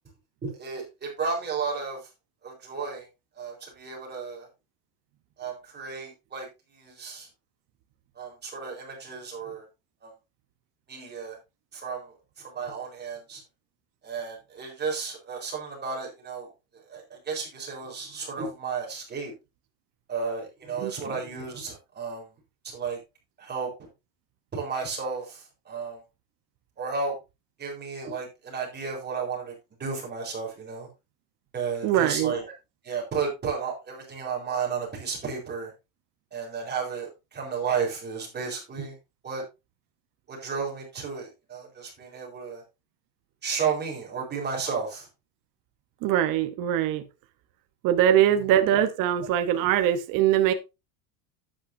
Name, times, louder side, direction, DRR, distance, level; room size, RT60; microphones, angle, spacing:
voice 1, 0.4-2.1 2.4-3.1 3.4-4.5 5.4-7.3 8.2-9.7 10.0-10.1 10.9-11.4 11.7-13.4 14.0-19.3 20.1-22.3 22.6-23.0 23.4-23.9 24.5-26.0 26.8-27.2 27.6-29.5 29.8-30.9 31.5-32.5 32.8-35.7 36.3-39.0 39.2-39.4 40.3-42.6 43.4-45.1 48.1-48.3, right 5 dB, 20° right, 4.0 m, -33 dB
voice 2, 31.8-32.3 46.0-47.0 47.8-50.5, right 11 dB, 40° right, 0.9 m, -22 dB
11.0 x 8.8 x 2.6 m
cardioid pair, 165°, 50 cm